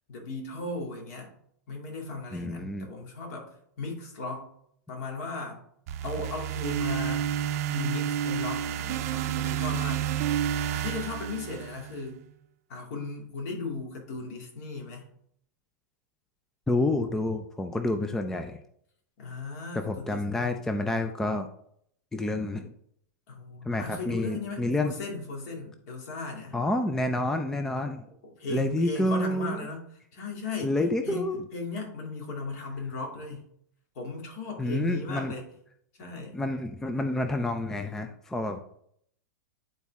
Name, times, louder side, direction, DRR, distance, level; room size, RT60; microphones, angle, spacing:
voice 1, 0.1-1.3 1.7-4.5 4.9-5.6 6.0-7.3 7.7-10.0 10.7-12.2 12.7-15.0 19.2-20.6 23.3-26.6 28.4-29.8 30.1-30.8 31.0-33.4 33.9-35.5 36.0-36.4, left 3 dB, 60° left, 1 dB, 2.6 m, -36 dB
voice 2, 2.3-2.9 16.7-18.6 19.8-21.5 22.1-22.7 23.6-24.9 26.5-28.0 28.5-29.6 30.6-31.4 34.6-35.3 36.3-38.8, left 2 dB, 5° left, 6 dB, 0.4 m, -29 dB
sound 1, 5.9-12.0, right 10 dB, 55° right, 0.6 m, -30 dB
10.5 x 4.1 x 3.6 m, 0.68 s
supercardioid pair, 150°, 10 cm